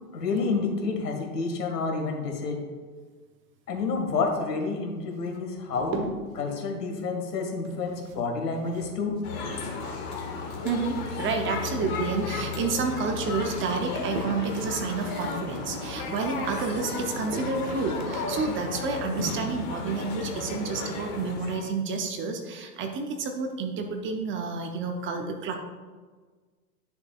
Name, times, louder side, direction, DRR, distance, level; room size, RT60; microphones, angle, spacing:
voice 1, 0.1-2.6 3.7-9.2, left 4 dB, 75° left, 2 dB, 2.0 m, -29 dB
sound 1, 5.1-6.4 7.5-9.9 10.2-12.0 12.3-13.2 13.7-19.8, right 3 dB, 55° right, 1.4 m, -42 dB
sound 2, 9.2-21.7, left 4 dB, 45° left, 1.9 m, -34 dB
voice 2, 10.6-25.6, right 4 dB, 25° right, 5 dB, 0.7 m, -30 dB
10.5 x 6.8 x 2.4 m, 1.4 s
hypercardioid pair, 110°, 48 cm